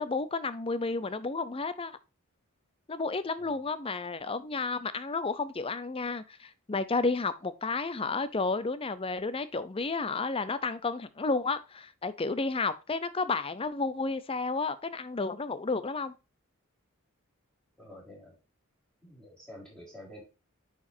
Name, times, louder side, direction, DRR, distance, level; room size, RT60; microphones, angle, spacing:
voice 1, 0.0-1.9 2.9-16.1, left 3 dB, 25° left, 0.5 m, -32 dB
voice 2, 17.8-18.4 19.0-20.2, left 1 dB, 5° left, 3.9 m, -49 dB
9.6 x 4.9 x 2.6 m
head